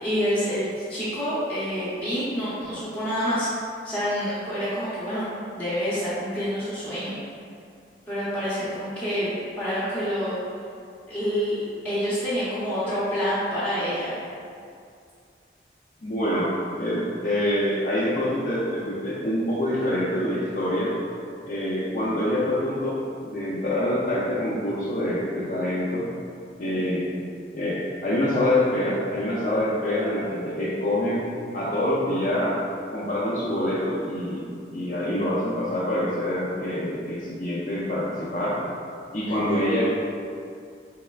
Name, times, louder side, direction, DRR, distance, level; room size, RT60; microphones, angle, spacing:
voice 1, 0.0-3.5 3.8-5.3 5.5-7.1 8.1-10.4 11.1-14.2 39.3-39.6, equal, 10° left, -12 dB, 0.7 m, -27 dB
voice 2, 16.0-16.5 16.8-20.9 21.4-26.1 26.6-27.1 27.5-31.2 31.5-32.5 32.9-34.4 34.7-38.6 39.1-39.8, left 1 dB, 45° left, -8 dB, 0.4 m, -26 dB
3.5 x 3.2 x 2.2 m, 2.3 s
head